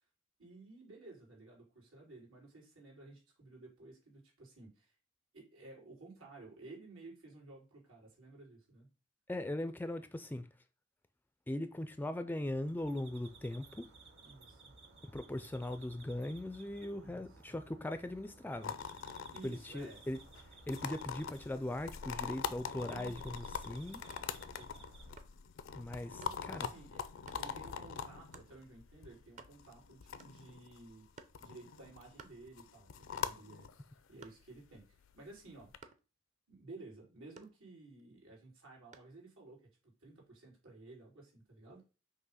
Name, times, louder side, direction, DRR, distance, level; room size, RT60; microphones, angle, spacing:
voice 1, 0.4-4.9 5.3-8.9 14.2-14.7 16.9-17.5 19.3-20.0 22.8-23.8 24.5-24.9 26.1-31.1 31.4-35.7 36.5-41.8, right 2 dB, 90° right, 3.5 m, -55 dB
voice 2, 9.3-10.5 11.5-13.9 15.1-18.7 19.4-20.2 20.7-24.0 25.7-26.7, left 1 dB, 10° left, 0.3 m, -39 dB
sound 1, 12.4-25.1, right 3 dB, 60° right, 1.0 m, -58 dB
sound 2, 18.6-35.8, left 6 dB, 70° left, 0.5 m, -44 dB
sound 3, 22.9-23.2 24.1-24.4 25.2-25.4 26.2-26.4 27.3-27.5 28.3-28.6 29.0-29.1 29.3-29.8 30.2-30.6 31.2-31.5 32.2-32.9 33.3-34.7 35.8-36.1 37.4-38.0 38.9-39.2, right 4 dB, 35° right, 0.6 m, -57 dB
6.0 x 2.9 x 5.6 m
head